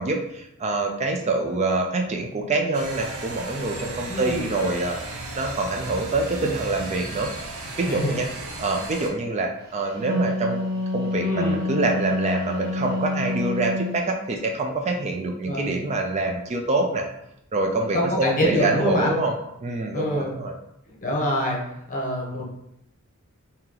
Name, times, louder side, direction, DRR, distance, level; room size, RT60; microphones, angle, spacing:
voice 1, 0.0-7.3 7.8-8.3 8.6-10.6 10.9-17.1 17.5-19.3 19.6-20.5, right 2 dB, 30° right, 2 dB, 0.4 m, -25 dB
sound 1, 2.7-9.1, right 2 dB, 80° right, 0.6 m, -35 dB
voice 2, 4.1-4.4 7.8-8.1 11.2-11.6 15.4-15.7 17.9-19.1 19.9-20.3 21.0-21.6 21.9-22.5, left 1 dB, 40° left, -2 dB, 0.9 m, -25 dB
Wind instrument woodwind instrument, 9.8-14.0, left 2 dB, 45° right, 0.8 m, -27 dB
2.9 x 2.8 x 3.8 m, 0.80 s
head